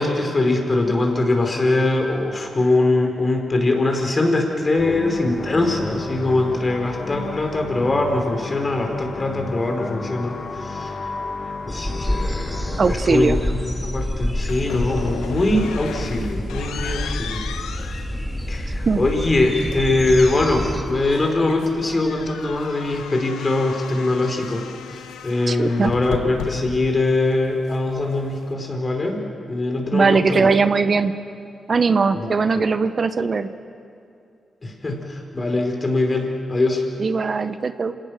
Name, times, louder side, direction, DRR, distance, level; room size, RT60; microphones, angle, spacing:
voice 1, 0.0-11.0 11.6-17.4 18.5-29.2 29.5-30.5 32.1-32.6 33.2-33.3 34.6-36.8, left 2 dB, 40° left, 3 dB, 4.7 m, -22 dB
sound 1, 4.8-13.8, left 4 dB, 55° left, 1.6 m, -33 dB
sound 2, 11.7-20.8, equal, 5° left, 2.8 m, -28 dB
voice 2, 12.8-13.4 18.9-19.0 25.5-25.9 29.9-31.1 31.7-33.5 37.0-37.9, right 4 dB, 50° right, 11 dB, 0.9 m, -19 dB
sound 3, 14.5-28.5, left 8 dB, 90° left, 1.0 m, -36 dB
27.0 x 18.0 x 6.5 m, 2.5 s
supercardioid pair, 45°, 0 cm